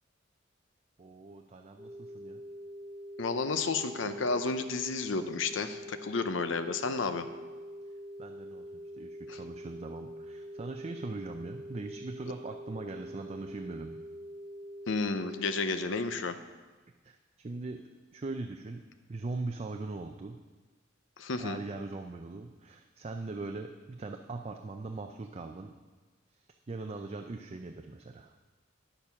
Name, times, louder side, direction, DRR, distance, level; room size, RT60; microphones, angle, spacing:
voice 1, 1.0-2.4 8.2-14.0 17.0-17.8 18.1-18.8 19.1-20.4 21.4-25.7 26.4-28.4, right 3 dB, 30° right, 5 dB, 0.4 m, -40 dB
sound 1, 1.8-16.2, equal, 10° right, 0.8 m, -45 dB
voice 2, 3.2-7.3 9.3-9.4 14.9-16.4 21.2-21.6, left 4 dB, 70° left, 9 dB, 0.7 m, -32 dB
10.0 x 7.0 x 5.8 m, 1.3 s
head